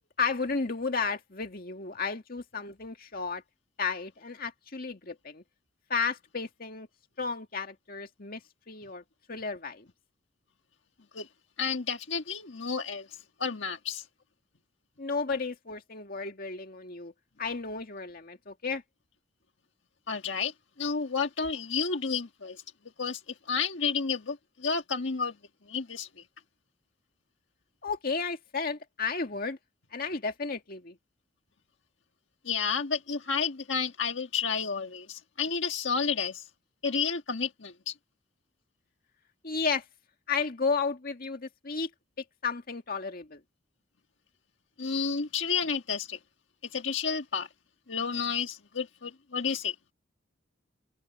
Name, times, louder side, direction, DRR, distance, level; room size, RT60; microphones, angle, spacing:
voice 1, 0.2-3.4 3.8-5.4 5.9-6.9 7.2-8.4 8.7-9.0 9.3-9.9 15.0-17.1 17.4-18.8 27.8-29.6 29.9-31.0 39.4-39.8 40.3-41.9 42.4-43.4, left 4 dB, 50° left, 2.0 m, -33 dB
voice 2, 11.6-14.0 20.1-22.6 23.0-23.2 23.4-25.3 25.7-26.1 32.4-36.5 36.8-37.9 44.8-46.2 46.7-47.5 47.9-49.7, left 5 dB, 65° left, 1.6 m, -31 dB
head